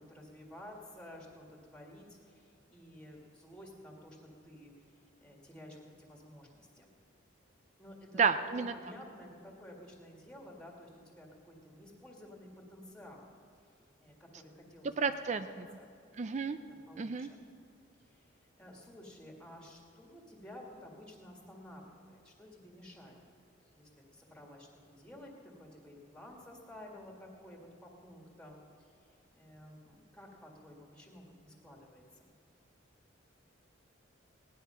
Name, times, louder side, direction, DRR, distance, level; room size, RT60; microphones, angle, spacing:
voice 1, 0.0-6.9 7.8-13.3 13.6-15.1 15.8-17.5 18.0-23.2 23.6-32.3, left 1 dB, 5° left, 0 dB, 1.9 m, -53 dB
voice 2, 8.2-8.7 15.0-15.8 16.2-16.6 17.0-17.3, right 5 dB, 35° right, 10 dB, 0.4 m, -31 dB
17.5 x 10.5 x 5.6 m, 2.5 s
head